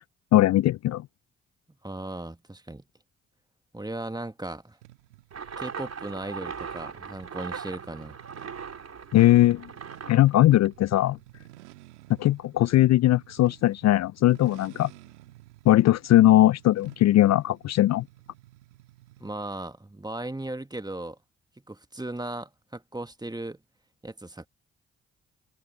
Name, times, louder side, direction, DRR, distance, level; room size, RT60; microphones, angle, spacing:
voice 1, 0.3-1.1 9.1-9.7 10.1-11.2 12.2-14.9 15.7-18.1, left 14 dB, 50° left, 0.4 m, -20 dB
voice 2, 1.8-2.8 3.7-4.8 5.6-8.2 19.2-21.2 21.7-23.6 24.0-24.5, right 2 dB, 10° right, 1.6 m, -37 dB
sound 1, 4.8-19.5, right 17 dB, 90° right, 1.6 m, -53 dB
sound 2, 5.3-11.2, right 6 dB, 50° right, 3.5 m, -39 dB
hypercardioid pair, 40°, 34 cm